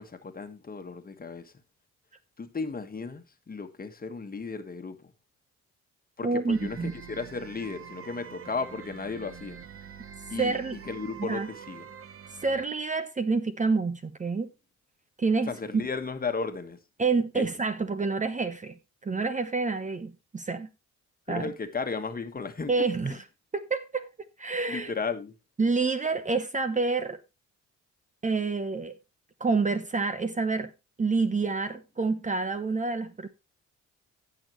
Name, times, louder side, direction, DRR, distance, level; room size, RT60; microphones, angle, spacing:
voice 1, 0.0-1.5 2.4-5.1 6.2-9.6 10.3-11.9 15.5-16.8 17.3-17.5 21.3-22.7 23.0-23.2 24.7-25.3, left 4 dB, 30° left, 1.5 m, -35 dB
voice 2, 6.2-6.9 10.4-10.8 11.2-11.5 12.4-14.5 15.2-15.5 17.0-18.7 19.0-20.7 21.3-21.5 22.7-23.2 23.5-24.1 24.4-24.9 25.6-27.2 28.2-29.0 29.4-30.7 31.0-33.3, right 4 dB, 25° right, 0.9 m, -28 dB
sound 1, 6.5-12.7, right 8 dB, 45° right, 1.1 m, -45 dB
16.0 x 6.4 x 3.1 m
cardioid pair, 90°, 30 cm